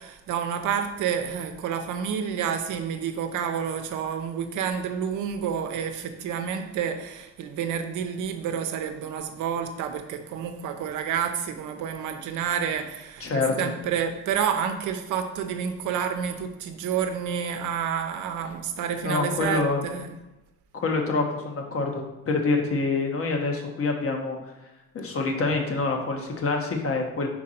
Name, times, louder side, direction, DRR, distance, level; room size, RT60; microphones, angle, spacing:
voice 1, 0.0-20.1, right 7 dB, 85° right, 6 dB, 0.8 m, -29 dB
voice 2, 13.2-13.7 19.0-19.8 20.7-24.4 24.9-27.3, left 3 dB, 50° left, 2 dB, 1.2 m, -26 dB
5.2 x 4.6 x 4.3 m, 1.0 s
cardioid pair, 90°, 30 cm